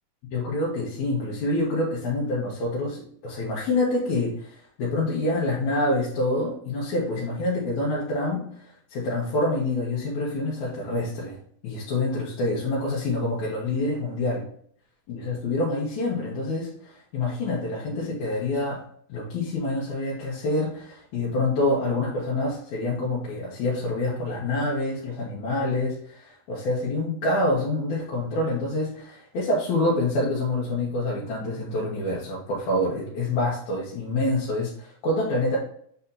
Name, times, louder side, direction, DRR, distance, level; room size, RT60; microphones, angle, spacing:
voice 1, 0.3-11.4 11.6-14.4 15.1-18.8 19.1-35.6, left 2 dB, 80° left, -6 dB, 2.8 m, -27 dB
8.2 x 4.3 x 2.8 m, 0.62 s
omnidirectional pair, 3.4 m